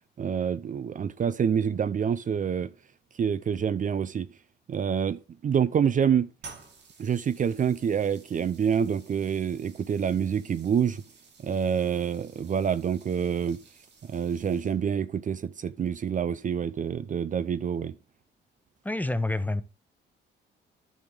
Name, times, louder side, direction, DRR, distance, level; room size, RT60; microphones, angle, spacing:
voice 1, 0.2-2.7 3.2-4.3 4.7-6.3 7.0-11.0 11.4-13.6 14.0-18.0, right 7 dB, 40° right, 0.5 m, -27 dB
sound 1, 6.4-15.0, right 4 dB, 60° right, 2.5 m, -53 dB
voice 2, 18.8-19.6, left 2 dB, 10° left, 0.7 m, -27 dB
10.5 x 6.4 x 3.6 m
cardioid pair, 90°, 20 cm